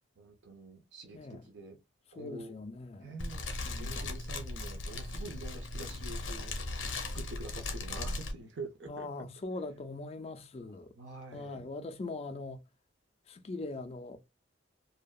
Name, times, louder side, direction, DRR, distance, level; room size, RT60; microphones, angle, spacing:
voice 1, 0.2-1.8 2.1-2.5 3.0-3.4 3.8-6.6 7.0-9.3 11.0-11.7, right 2 dB, 65° right, 0.6 m, -46 dB
voice 2, 2.2-3.1 3.6-4.0 8.9-10.9 11.3-12.6 13.3-14.2, left 2 dB, 30° left, 0.3 m, -41 dB
Fire, 3.2-8.3, left 2 dB, 70° left, 0.6 m, -38 dB
2.6 x 2.2 x 2.2 m
head